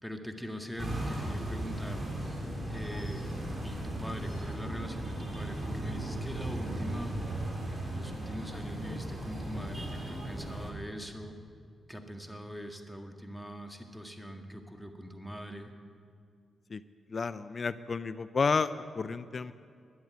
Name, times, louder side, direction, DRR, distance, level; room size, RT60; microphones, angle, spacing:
voice 1, 0.0-2.0 2.7-3.3 3.6-7.1 7.9-11.3 11.9-15.7, equal, 5° left, 4 dB, 1.6 m, -42 dB
sound 1, 0.8-10.7, right 1 dB, 25° right, 4.3 m, -36 dB
voice 2, 17.1-19.5, left 4 dB, 50° left, 14 dB, 0.5 m, -31 dB
12.5 x 10.0 x 9.2 m, 2.2 s
cardioid pair, 65°, 0 cm